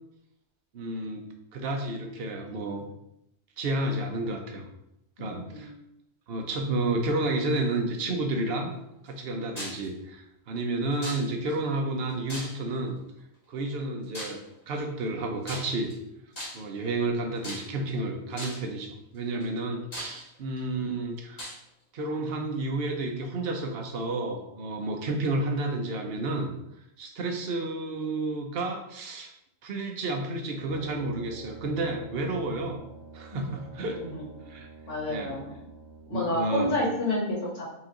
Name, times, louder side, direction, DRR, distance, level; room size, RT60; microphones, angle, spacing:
voice 1, 0.7-1.2 1.5-2.9 3.6-4.7 5.2-5.7 6.3-8.7 9.0-13.0 13.5-14.4 14.7-15.9 16.5-21.4 21.9-26.5 27.0-29.3 29.6-32.8 33.1-34.0 34.5-34.7 35.1-35.4 36.1-36.7, right 2 dB, 55° right, 3 dB, 0.8 m, -31 dB
voice 2, 5.2-5.7 33.3-33.6 33.9-34.3 34.9-35.5 36.1-37.6, left 1 dB, 65° left, -5 dB, 1.8 m, -30 dB
sound 1, 9.6-9.9 11.0-11.5 12.3-12.8 14.1-14.5 15.4-15.9 16.3-16.8 17.4-17.9 18.4-18.7 19.4-19.5 19.9-20.6 21.4-21.6, equal, 35° left, 1.1 m, -38 dB
Brass instrument, 30.5-36.3, right 3 dB, 50° left, 1.6 m, -48 dB
4.4 x 2.9 x 3.7 m, 0.83 s
omnidirectional pair, 1.4 m